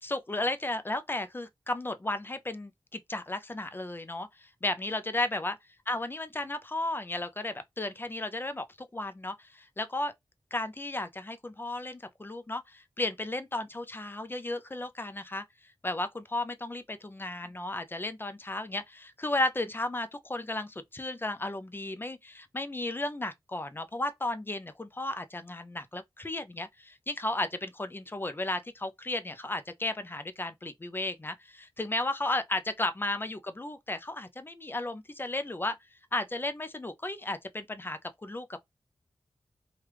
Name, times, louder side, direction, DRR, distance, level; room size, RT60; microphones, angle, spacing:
voice 1, 0.0-5.6 5.9-10.1 10.5-15.4 15.8-35.8 36.1-38.6, left 2 dB, 25° left, 0.5 m, -34 dB
3.0 x 2.4 x 3.3 m
wide cardioid pair, 85°, 9 cm